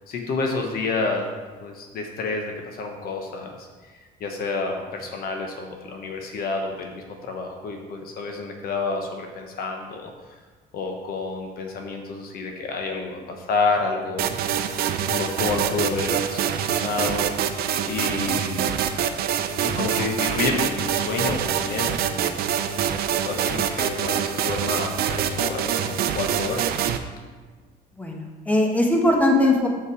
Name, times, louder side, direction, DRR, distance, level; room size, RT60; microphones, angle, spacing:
voice 1, 0.1-10.1 10.7-14.3 15.1-17.3 17.8-18.7 19.6-22.5 23.2-26.6, left 3 dB, 65° left, 3 dB, 1.1 m, -29 dB
sound 1, 14.2-27.0, right 9 dB, 65° right, 0.6 m, -25 dB
voice 2, 28.0-29.7, left 1 dB, 10° left, 0 dB, 1.6 m, -20 dB
8.1 x 5.8 x 4.7 m, 1.4 s
cardioid pair, 110°, 17 cm